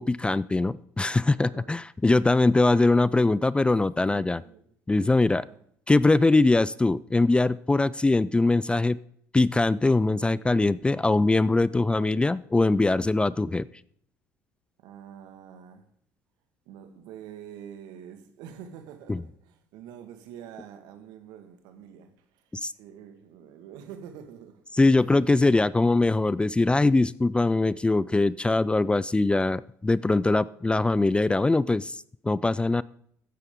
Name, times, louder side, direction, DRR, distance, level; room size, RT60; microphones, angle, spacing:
voice 1, 0.0-4.4 4.9-5.4 5.9-9.0 9.3-13.7 19.1-19.2 22.6-22.7 24.8-32.0 32.2-32.8, left 2 dB, 15° left, 0.4 m, -22 dB
voice 2, 1.3-1.7 4.1-4.7 5.2-5.6 14.8-15.8 16.6-25.1, right 9 dB, 70° right, 1.7 m, -46 dB
14.0 x 9.8 x 3.7 m
hypercardioid pair, 65°, 7 cm